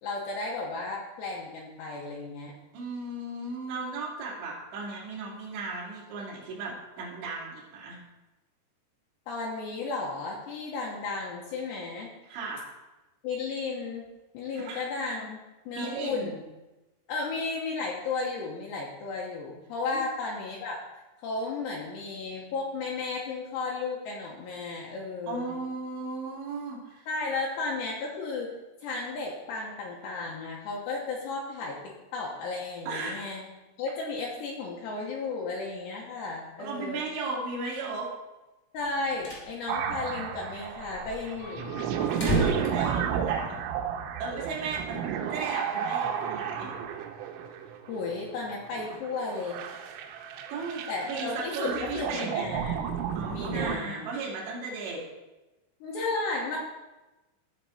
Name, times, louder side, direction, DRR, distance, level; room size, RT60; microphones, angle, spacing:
voice 1, 0.0-2.5 9.3-12.1 13.2-14.0 14.3-16.4 17.1-20.8 21.2-25.6 27.1-28.5 28.8-33.5 33.8-37.0 38.7-41.7 47.9-49.6 50.9-52.9 53.3-54.0 55.8-56.6, left 3 dB, 75° left, -3 dB, 3.0 m, -34 dB
voice 2, 2.7-8.0 12.3-12.7 14.6-14.8 15.7-16.3 19.9-20.0 25.3-27.1 32.9-33.3 36.6-38.1 42.0-43.6 44.2-46.7 50.2-52.5 53.2-55.0, right 3 dB, 70° right, -5 dB, 4.3 m, -36 dB
sound 1, 38.9-39.5 39.8-39.9 40.1-40.2 40.7-43.7, equal, 20° left, 2.0 m, -32 dB
sound 2, 39.7-53.8, right 8 dB, 90° right, 3.4 m, -33 dB
15.0 x 5.3 x 4.2 m, 1.1 s
omnidirectional pair, 5.6 m